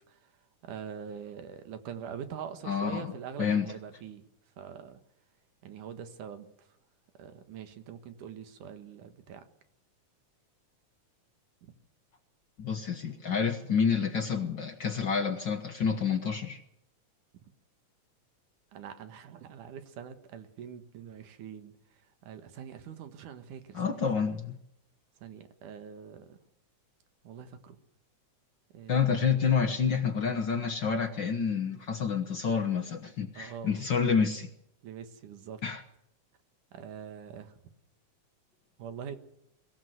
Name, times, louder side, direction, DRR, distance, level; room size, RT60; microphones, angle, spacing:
voice 1, 0.6-4.2 4.6-5.0 5.6-6.5 7.2-9.4 11.6-11.7 18.7-21.7 22.2-24.0 25.2-26.4 27.2-27.8 28.7-29.1 33.4-33.7 34.8-35.6 36.7-37.5 38.8-39.2, right 8 dB, 90° right, 9 dB, 3.1 m, -43 dB
voice 2, 2.6-3.1 3.4-3.7 12.6-16.6 23.7-24.6 28.9-34.5 35.6-35.8, left 6 dB, 50° left, 4 dB, 1.4 m, -28 dB
22.5 x 16.0 x 7.9 m, 0.77 s
omnidirectional pair, 3.5 m